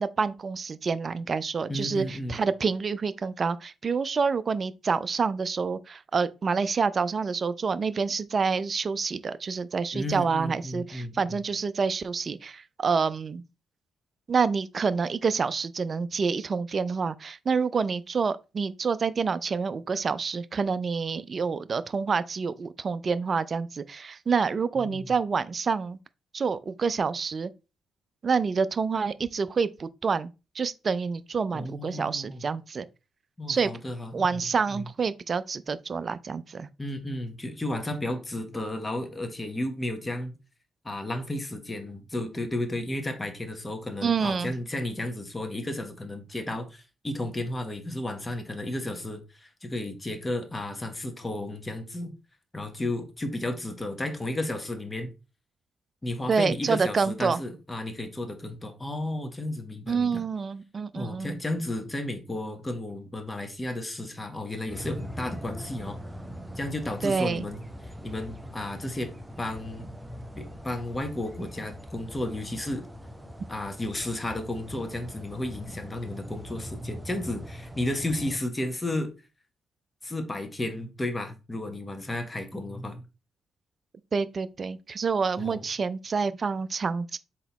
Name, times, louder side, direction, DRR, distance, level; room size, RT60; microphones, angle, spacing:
voice 1, 0.0-13.4 14.3-26.0 26.3-27.5 28.2-30.3 30.5-32.8 33.5-33.7 34.1-36.7 44.0-44.5 56.3-57.4 59.9-61.4 67.0-67.4 84.1-87.2, right 5 dB, 45° right, 0.3 m, -27 dB
voice 2, 1.7-2.4 9.9-11.4 24.8-25.0 31.5-32.4 33.4-34.2 34.7-34.8 36.8-40.4 40.8-52.1 52.5-55.1 56.0-60.2 60.9-66.0 66.6-69.1 69.4-69.9 70.4-72.8 73.5-79.1 80.0-83.0 85.4-85.6, left 1 dB, 25° left, 1.1 m, -33 dB
sound 1, 64.7-78.4, equal, 10° right, 0.8 m, -42 dB
3.9 x 2.9 x 4.0 m
hypercardioid pair, 45°, 0 cm